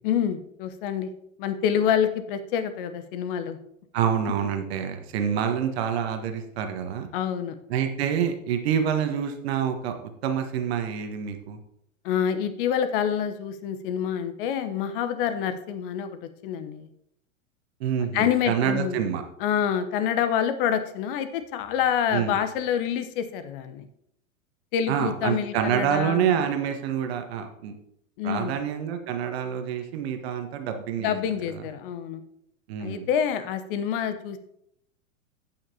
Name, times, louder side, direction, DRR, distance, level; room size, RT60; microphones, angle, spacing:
voice 1, 0.0-1.1 1.4-3.6 7.1-7.6 12.0-16.9 18.1-19.0 19.4-23.9 24.7-26.5 28.2-28.5 31.0-32.2 32.8-34.4, left 8 dB, 40° left, 10 dB, 1.0 m, -27 dB
voice 2, 3.9-7.1 7.7-9.9 10.2-11.6 17.8-19.2 22.1-22.4 24.9-27.7 28.2-31.1 31.6-31.7 32.7-33.1, right 8 dB, 50° right, 6 dB, 1.4 m, -27 dB
15.5 x 5.9 x 2.9 m, 0.76 s
figure-of-eight pair, 100°, 41 cm